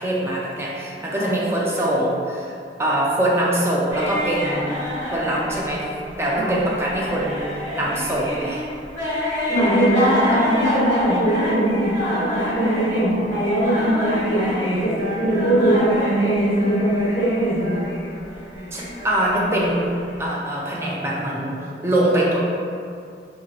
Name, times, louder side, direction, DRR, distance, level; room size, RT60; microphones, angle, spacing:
voice 1, 0.0-2.5 2.8-4.7 5.1-7.4 7.7-8.7 18.7-19.9 20.2-22.4, right 1 dB, 15° right, -4 dB, 0.3 m, -23 dB
sound 1, 3.9-20.2, left 1 dB, 80° right, 1.3 m, -29 dB
voice 2, 9.5-17.8, right 1 dB, 20° left, -10 dB, 0.8 m, -20 dB
2.9 x 2.4 x 2.6 m, 2.4 s
head